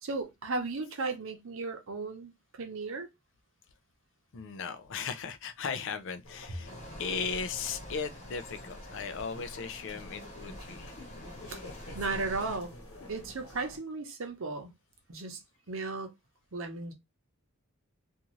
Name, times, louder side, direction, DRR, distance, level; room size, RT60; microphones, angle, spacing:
voice 1, 0.0-3.1 6.6-6.8 11.5-11.6 11.9-12.7 13.1-14.7 15.1-15.4 15.7-16.1 16.5-16.9, right 3 dB, 65° right, 0.8 m, -35 dB
voice 2, 4.3-6.7 7.0-10.9, left 5 dB, 65° left, 0.4 m, -37 dB
sound 1, 6.2-13.8, left 1 dB, 85° left, 1.3 m, -49 dB
sound 2, 6.7-12.6, equal, 30° left, 0.9 m, -47 dB
2.6 x 2.4 x 3.0 m
head